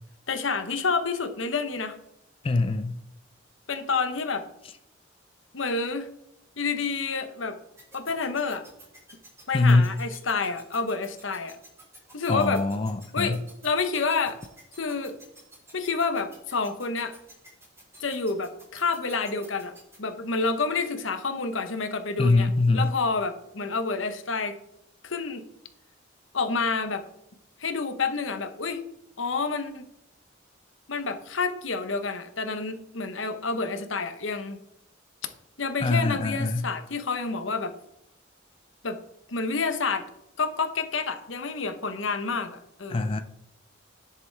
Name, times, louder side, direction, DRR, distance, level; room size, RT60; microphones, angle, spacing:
voice 1, 0.3-1.9 3.7-4.4 5.5-6.1 6.6-7.6 7.9-8.6 9.5-11.6 12.1-12.6 13.1-13.4 13.6-14.4 14.8-15.2 15.7-17.1 18.0-19.7 20.0-24.5 25.0-25.4 26.3-27.0 27.6-28.8 29.2-29.8 30.9-34.6 35.6-37.7 38.8-39.0 39.3-40.1 40.4-43.1, left 4 dB, 80° left, 1.1 m, -29 dB
voice 2, 2.4-3.0 9.5-9.9 12.3-13.4 22.2-22.9 35.8-36.7 42.9-43.2, left 2 dB, 30° left, 0.4 m, -23 dB
sound 1, 7.8-20.0, right 1 dB, 15° right, 3.9 m, -50 dB
10.5 x 7.1 x 3.4 m
head